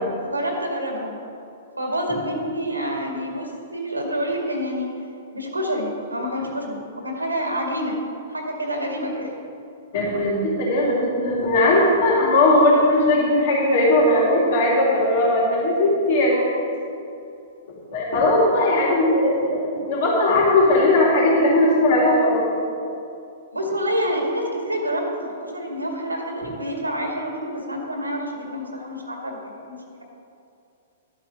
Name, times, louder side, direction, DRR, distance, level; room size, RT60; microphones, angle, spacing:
voice 1, 0.2-1.2 1.8-4.9 5.3-8.0 8.3-9.3 23.5-29.4 29.7-30.0, equal, 85° right, 1 dB, 2.1 m, -27 dB
voice 2, 9.9-16.5 17.9-22.4, left 1 dB, 50° left, -8 dB, 3.1 m, -18 dB
13.0 x 8.2 x 5.1 m, 2.6 s
figure-of-eight pair, 110°, 0 cm